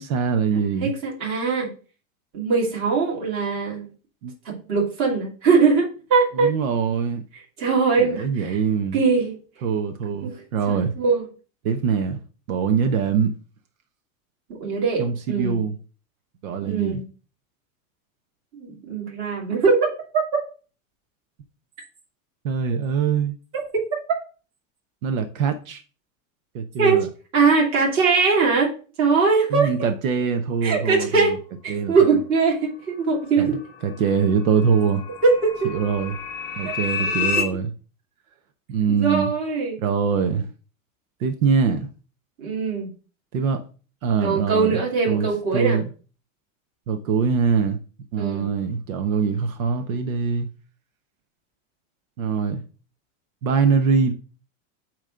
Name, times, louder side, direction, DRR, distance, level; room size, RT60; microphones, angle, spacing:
voice 1, 0.0-0.9 4.2-4.3 6.4-7.2 8.0-9.0 9.6-10.9 11.6-12.2 12.5-13.4 15.0-15.8 16.4-17.0 22.4-23.4 25.0-25.8 26.5-27.1 29.5-31.4 31.7-31.9 33.4-35.0 35.6-36.2 36.6-37.7 38.7-39.3 39.8-40.5 41.2-41.9 43.3-43.6 44.0-44.8 45.1-45.3 45.5-45.8 46.9-47.8 48.1-50.5 52.2-52.6 53.4-54.1, right 6 dB, 80° right, 1.1 m, -23 dB
voice 2, 0.8-1.7 2.3-3.9 4.4-6.5 7.6-8.6 8.9-9.4 10.2-10.4 10.7-11.2 14.6-15.6 16.6-17.0 18.5-20.4 23.5-23.6 26.8-27.1 27.3-29.7 30.6-31.3 31.6-33.6 35.2-35.7 36.6-36.8 38.9-39.8 42.4-42.9 44.2-45.8 48.2-48.5, right 4 dB, 30° right, 2.4 m, -21 dB
sound 1, 33.1-37.4, left 6 dB, 5° left, 0.4 m, -30 dB
8.8 x 3.2 x 6.3 m
supercardioid pair, 180°, 41 cm